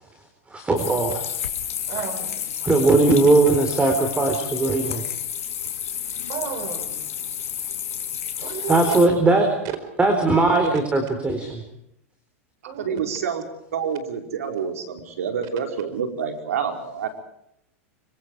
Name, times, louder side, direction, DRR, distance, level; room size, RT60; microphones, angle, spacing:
voice 1, 0.5-1.3 2.6-5.0 8.4-9.5 10.0-11.6, right 2 dB, 15° right, 5 dB, 4.3 m, -19 dB
sound 1, 0.8-9.1, left 9 dB, 90° left, 2.9 m, -30 dB
voice 2, 1.9-2.5 6.3-7.0 8.4-9.0 12.7-13.0, right 9 dB, 50° right, 10 dB, 4.8 m, -33 dB
voice 3, 12.6-13.4 13.7-17.1, right 7 dB, 85° right, 5 dB, 4.8 m, -28 dB
25.5 x 25.0 x 4.9 m, 0.77 s
hypercardioid pair, 115°, 8 cm